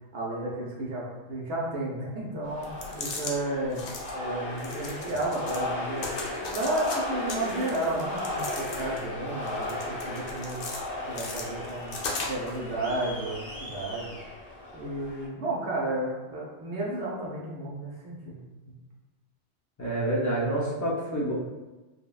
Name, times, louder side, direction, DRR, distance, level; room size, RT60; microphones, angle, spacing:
voice 1, 0.1-3.9 4.1-6.1 6.5-10.7 11.1-14.2 14.7-18.4 18.7-18.8, right 1 dB, 80° right, -4 dB, 0.9 m, -32 dB
sound 1, 2.4-15.3, left 1 dB, 85° left, 1.0 m, -36 dB
sound 2, 2.6-3.3 3.7-4.1 4.6-5.6 6.0-7.0 7.3-9.1 9.5-10.8 11.1-12.6, left 3 dB, 65° left, 0.7 m, -37 dB
voice 2, 19.8-21.3, right 1 dB, 25° left, -5 dB, 0.4 m, -28 dB
3.3 x 2.1 x 2.2 m, 1.1 s
omnidirectional pair, 1.1 m